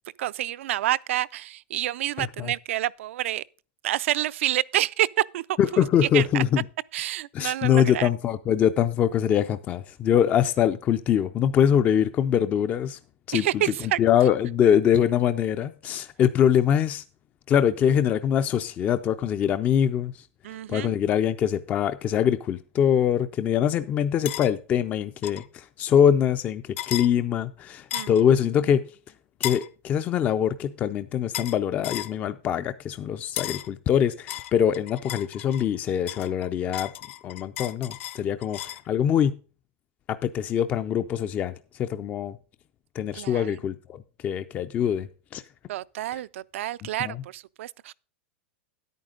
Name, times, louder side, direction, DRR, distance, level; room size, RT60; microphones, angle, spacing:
voice 1, 0.2-3.4 3.8-6.4 6.9-8.1 13.3-14.0 20.4-21.0 27.9-28.1 43.1-43.6 45.7-47.9, right 14 dB, 75° right, 0.4 m, -28 dB
voice 2, 2.2-2.5 5.6-6.6 7.3-13.0 13.3-13.5 14.0-17.0 17.5-20.3 20.7-28.9 29.4-36.9 37.2-38.6 38.9-39.4 40.1-41.5 41.8-42.4 43.0-45.1 45.3-45.4 47.0-47.2, left 9 dB, 20° left, 0.4 m, -23 dB
sound 1, 24.2-24.5 25.2-25.5 26.8-27.1 27.9-28.2 29.4-29.7 31.3-31.6 31.8-32.1 33.4-33.7 34.3-35.7 36.1-38.9, left 13 dB, 70° left, 0.7 m, -34 dB
10.5 x 9.1 x 3.7 m
supercardioid pair, 160°, 7 cm